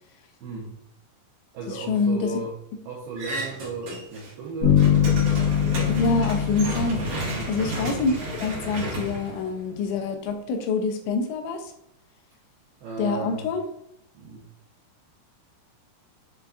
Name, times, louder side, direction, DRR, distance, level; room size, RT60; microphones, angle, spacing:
voice 1, 0.4-0.8 1.5-2.6 2.8-5.2 7.3-7.6 12.8-13.5 14.1-14.4, right 3 dB, 85° right, -4 dB, 2.2 m, -35 dB
voice 2, 1.7-2.4 5.9-11.7 13.0-13.6, left 4 dB, 85° left, 5 dB, 2.8 m, -26 dB
sound 1, 3.2-4.3 4.6-10.0, right 2 dB, 70° right, 1.7 m, -32 dB
sound 2, 4.6-8.3, left 9 dB, 65° left, 2.3 m, -23 dB
7.1 x 2.5 x 2.3 m, 0.76 s
omnidirectional pair, 5.3 m